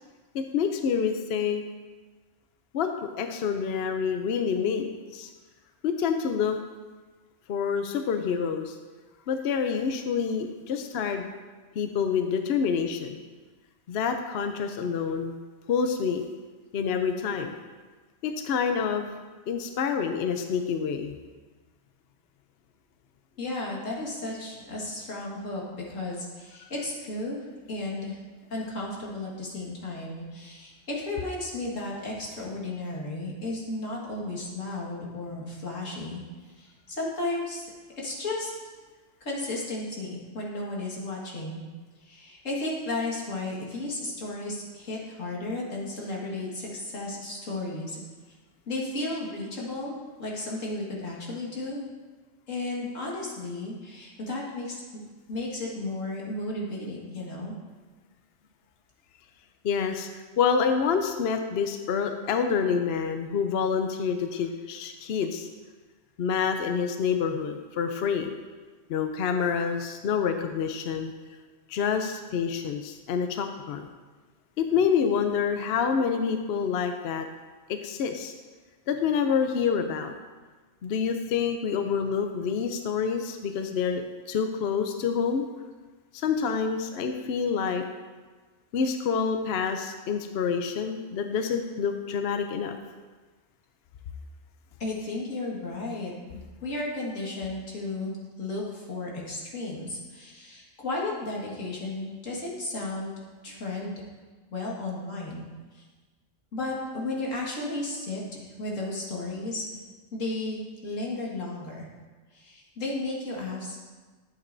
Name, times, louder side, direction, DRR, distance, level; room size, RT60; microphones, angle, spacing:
voice 1, 0.3-1.6 2.7-5.3 5.8-6.6 7.5-8.8 9.3-11.3 11.8-13.2 13.9-15.4 15.7-16.2 16.7-17.5 18.2-19.2 19.5-21.1 26.6-26.7 59.6-65.5 66.2-68.3 68.9-71.1 71.7-73.8 74.6-77.3 77.7-78.3 78.9-80.1 80.8-85.5 86.1-87.8 88.7-92.8, left 6 dB, 60° left, 6 dB, 0.8 m, -27 dB
voice 2, 23.4-28.2 28.5-37.7 38.0-38.5 39.2-41.6 42.0-48.0 48.3-48.4 48.7-51.8 52.5-55.0 55.3-57.5 91.3-91.5 94.8-96.1 96.6-103.1 103.4-103.9 104.5-105.5 105.7-105.8 106.5-109.7 110.1-111.9 112.3-113.8, left 2 dB, 85° left, -3 dB, 2.2 m, -34 dB
11.5 x 8.1 x 2.6 m, 1.3 s
omnidirectional pair, 1.3 m